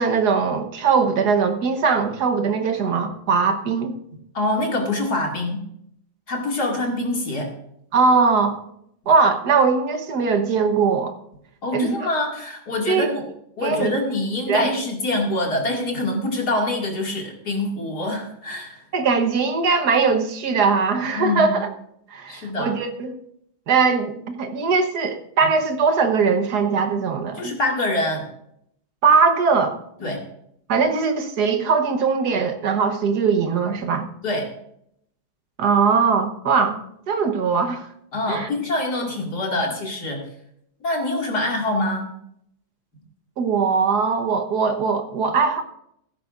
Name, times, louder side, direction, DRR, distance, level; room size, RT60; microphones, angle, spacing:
voice 1, 0.0-3.9 7.9-8.6 9.1-11.1 11.7-12.1 12.9-13.1 13.6-13.9 14.5-14.7 18.9-21.7 22.1-23.1 23.7-27.5 29.0-29.8 30.7-34.0 35.6-36.8 37.1-37.9 38.3-38.5 43.4-45.6, right 5 dB, 55° right, 6 dB, 1.6 m, -20 dB
voice 2, 4.3-5.6 6.3-7.5 11.6-13.2 13.6-18.8 21.1-21.6 22.3-22.7 27.3-28.2 30.0-30.2 34.2-34.4 38.1-40.3 40.8-42.1, left 2 dB, 50° left, 0 dB, 2.8 m, -25 dB
16.0 x 13.5 x 2.5 m, 0.73 s
omnidirectional pair, 2.2 m